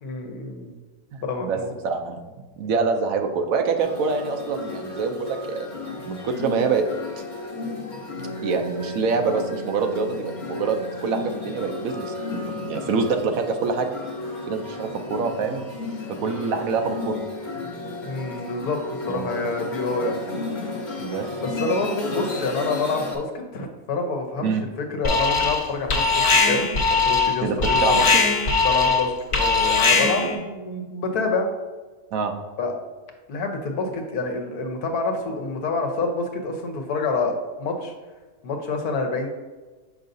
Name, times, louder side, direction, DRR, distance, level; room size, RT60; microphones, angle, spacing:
voice 1, 0.0-0.8 1.2-1.7 18.0-20.2 21.4-24.5 24.9-28.0 28.6-31.5 32.6-32.7 33.3-37.9 38.4-39.3, left 3 dB, 80° left, 3 dB, 1.4 m, -27 dB
voice 2, 1.1-5.7 6.0-6.8 8.4-13.9 14.5-15.6 16.2-17.2 19.1-19.3 21.0-21.3 24.4-24.6 27.4-28.1 29.9-30.4 32.1-32.3, right 5 dB, 70° right, 5 dB, 1.0 m, -26 dB
sound 1, 3.8-23.2, left 2 dB, 40° left, 0.8 m, -33 dB
Alarm, 25.0-25.6 25.9-30.4, left 4 dB, 60° left, 1.5 m, -20 dB
6.5 x 5.5 x 2.6 m, 1.3 s
omnidirectional pair, 1.6 m